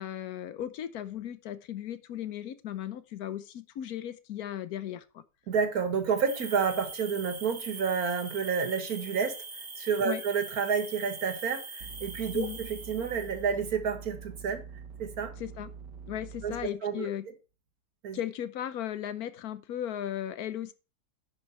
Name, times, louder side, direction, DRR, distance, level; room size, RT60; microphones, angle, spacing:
voice 1, 0.0-5.2 10.0-10.2 12.3-12.6 15.4-15.7 16.1-17.2 18.1-20.7, left 11 dB, 65° left, 1.2 m, -36 dB
voice 2, 5.5-9.4 9.8-14.6 15.0-15.3 16.4-16.6 16.8-17.1 18.0-18.2, right 6 dB, 60° right, 1.8 m, -30 dB
sound 1, 6.3-13.5, right 3 dB, 30° right, 1.1 m, -43 dB
sound 2, 11.8-16.7, right 6 dB, 90° right, 1.7 m, -45 dB
10.5 x 5.4 x 4.2 m
omnidirectional pair, 1.8 m